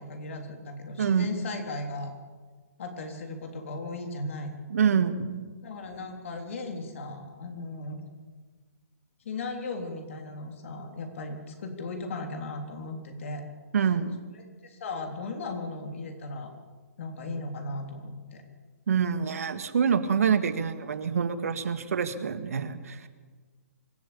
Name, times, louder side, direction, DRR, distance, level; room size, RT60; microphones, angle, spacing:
voice 1, 0.0-2.1 2.8-4.5 5.6-8.0 9.3-13.4 14.3-16.5 17.0-18.4, left 2 dB, 55° left, 4 dB, 3.5 m, -37 dB
voice 2, 1.0-1.3 4.7-5.5 13.7-14.2 18.9-23.1, right 7 dB, 65° right, 9 dB, 2.0 m, -26 dB
25.0 x 12.5 x 8.7 m, 1.4 s
hypercardioid pair, 160°, 8 cm